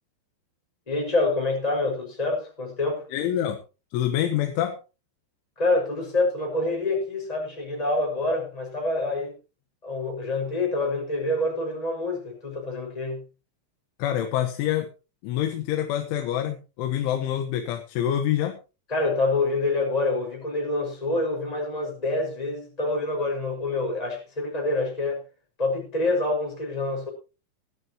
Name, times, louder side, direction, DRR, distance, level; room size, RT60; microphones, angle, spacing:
voice 1, 0.9-3.0 5.6-9.4 9.8-13.2 18.9-25.2 25.6-27.1, left 2 dB, 10° left, 0 dB, 5.6 m, -26 dB
voice 2, 3.1-3.6 3.9-4.8 14.0-14.9 15.2-18.6, left 11 dB, 85° left, 6 dB, 3.7 m, -26 dB
18.5 x 12.0 x 3.0 m, 0.31 s
omnidirectional pair, 5.4 m